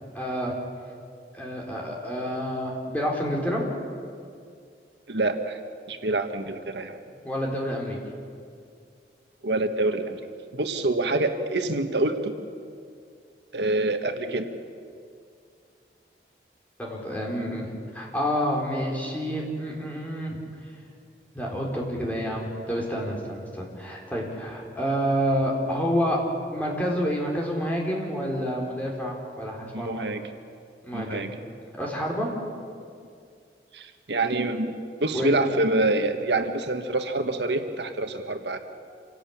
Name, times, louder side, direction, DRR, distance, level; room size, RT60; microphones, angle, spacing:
voice 1, 0.1-0.6 1.3-3.6 7.2-8.0 16.8-20.4 21.3-26.2 26.5-30.1 30.8-31.3 31.8-32.3 35.1-35.4, equal, 10° left, -2 dB, 4.2 m, -28 dB
voice 2, 5.1-5.6 5.9-7.0 9.4-10.2 10.5-12.5 13.5-14.5 29.7-30.2 30.9-31.3 33.7-38.6, right 2 dB, 80° right, 7 dB, 1.5 m, -26 dB
27.0 x 17.5 x 8.7 m, 2.3 s
head